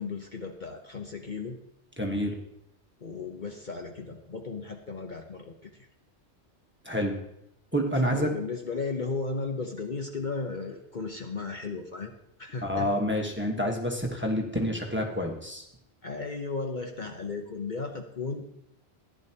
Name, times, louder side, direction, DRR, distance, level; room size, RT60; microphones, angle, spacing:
voice 1, 0.0-1.6 3.0-5.9 8.0-12.9 16.0-18.5, left 4 dB, 45° left, 3 dB, 1.0 m, -35 dB
voice 2, 2.0-2.4 6.8-7.2 7.7-8.3 12.6-15.6, equal, 10° right, 1 dB, 1.3 m, -28 dB
14.5 x 10.5 x 2.9 m, 0.81 s
omnidirectional pair, 1.2 m